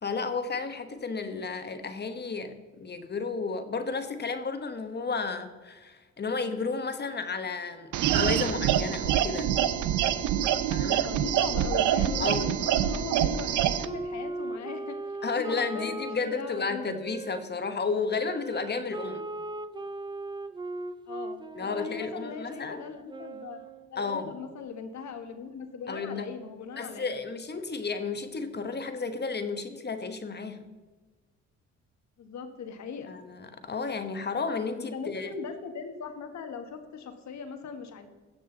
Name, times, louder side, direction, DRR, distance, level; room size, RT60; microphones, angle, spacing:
voice 1, 0.0-9.6 10.7-11.1 12.2-12.5 15.2-19.3 21.5-22.8 24.0-24.3 25.9-26.4 26.8-30.6 33.1-35.4, left 4 dB, 35° left, 8 dB, 1.1 m, -32 dB
sound 1, 7.9-13.9, right 10 dB, 90° right, 0.7 m, -26 dB
voice 2, 11.0-12.3 12.6-16.8 21.1-23.6 23.9-27.1 32.2-33.1 34.9-38.1, left 6 dB, 65° left, 7 dB, 1.5 m, -39 dB
Wind instrument woodwind instrument, 11.5-17.4 18.1-23.9, right 2 dB, 15° right, 0.5 m, -39 dB
16.5 x 6.3 x 3.9 m, 1.3 s
cardioid pair, 90°, 30 cm